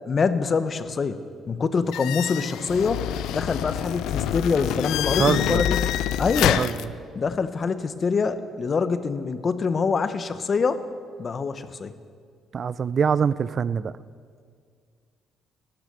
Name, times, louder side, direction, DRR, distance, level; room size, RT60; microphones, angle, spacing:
voice 1, 0.1-5.9 6.2-6.7 7.1-10.8 11.2-11.9, left 5 dB, 35° left, 12 dB, 0.9 m, -25 dB
sound 1, 1.9-6.8, left 11 dB, 80° left, 0.5 m, -26 dB
voice 2, 5.2-5.6 6.6-6.7 12.5-13.9, right 6 dB, 45° right, 18 dB, 0.4 m, -23 dB
15.5 x 13.0 x 6.6 m, 2.1 s
cardioid pair, 105°, 0 cm